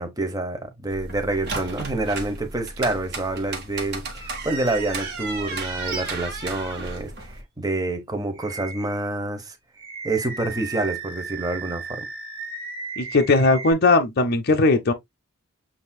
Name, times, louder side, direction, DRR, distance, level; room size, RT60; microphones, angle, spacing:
voice 1, 0.0-9.6 10.0-12.1, right 2 dB, 20° right, 0.9 m, -27 dB
sound 1, 0.9-7.4, right 3 dB, 50° right, 1.5 m, -33 dB
Animal, 5.8-6.1 6.6-6.7 8.4-9.1 9.8-13.7, right 4 dB, 70° right, 1.6 m, -35 dB
voice 2, 13.0-14.9, left 3 dB, 50° left, 0.6 m, -18 dB
8.0 x 2.8 x 2.2 m
head